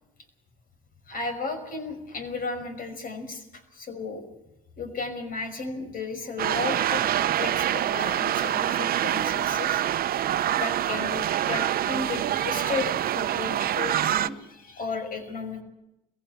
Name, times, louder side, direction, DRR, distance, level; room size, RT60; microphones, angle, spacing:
voice 1, 1.1-4.2 4.8-9.8 10.6-15.6, left 4 dB, 55° left, 8 dB, 5.7 m, -34 dB
sound 1, 6.4-14.3, right 11 dB, 60° right, 0.7 m, -26 dB
21.5 x 16.0 x 8.3 m, 0.89 s
supercardioid pair, 65°, 17 cm